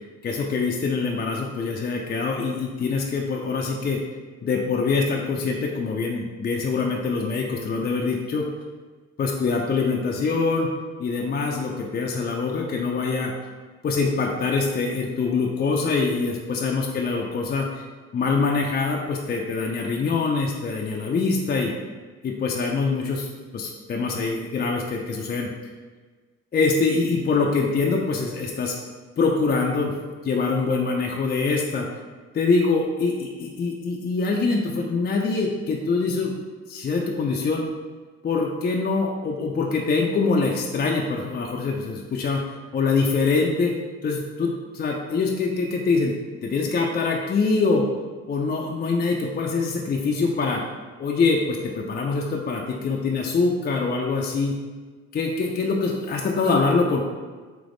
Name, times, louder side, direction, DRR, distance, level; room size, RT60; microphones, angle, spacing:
voice 1, 0.2-4.0 4.4-8.5 9.2-10.7 11.0-13.3 13.8-17.8 18.1-21.7 22.2-23.3 23.5-25.5 26.5-28.7 29.2-29.9 30.2-31.9 32.3-37.7 38.2-42.4 42.7-43.8 44.0-46.1 46.4-47.9 48.3-50.6 51.0-54.5 55.1-57.0, left 4 dB, 30° left, 0 dB, 0.4 m, -24 dB
3.4 x 3.0 x 3.8 m, 1.4 s
cardioid pair, 90°, 30 cm